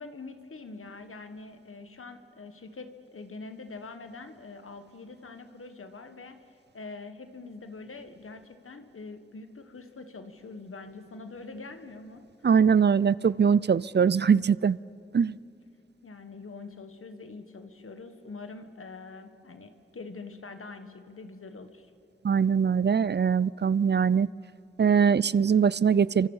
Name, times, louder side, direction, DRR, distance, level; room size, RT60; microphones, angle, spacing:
voice 1, 0.0-6.4 6.7-12.6 16.0-21.9, left 3 dB, 85° left, 8 dB, 1.5 m, -44 dB
voice 2, 12.4-14.8 15.1-15.3 22.2-24.3 24.8-26.3, right 6 dB, 55° right, 21 dB, 0.5 m, -22 dB
30.0 x 25.0 x 5.6 m, 2.5 s
wide cardioid pair, 55°, 21 cm